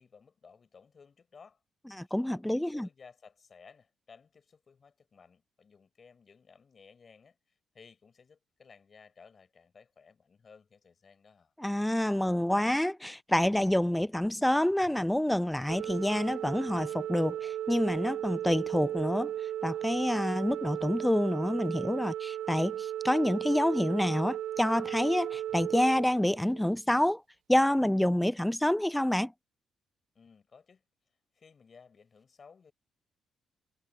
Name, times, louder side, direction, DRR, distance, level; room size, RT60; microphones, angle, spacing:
voice 1, 0.0-1.6 2.0-2.2 2.5-7.4 7.7-11.5 30.1-30.8 31.3-32.7, left 5 dB, 40° left, 5.1 m, -57 dB
voice 2, 1.9-2.9 11.6-19.3 19.6-27.2 27.5-29.3, left 1 dB, 5° left, 0.3 m, -28 dB
Organ, 15.7-26.8, right 11 dB, 80° right, 0.3 m, -36 dB
cardioid pair, 90°, 0 cm